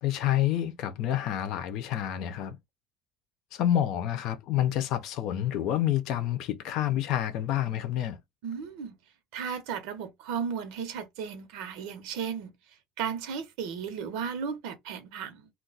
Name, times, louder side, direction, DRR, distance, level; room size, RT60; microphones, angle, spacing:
voice 1, 0.0-2.6 3.5-8.2, left 11 dB, 60° left, 0.6 m, -28 dB
voice 2, 8.4-8.9 9.3-15.5, right 7 dB, 80° right, 0.8 m, -35 dB
2.4 x 2.2 x 3.9 m
cardioid pair, 145°, 0 cm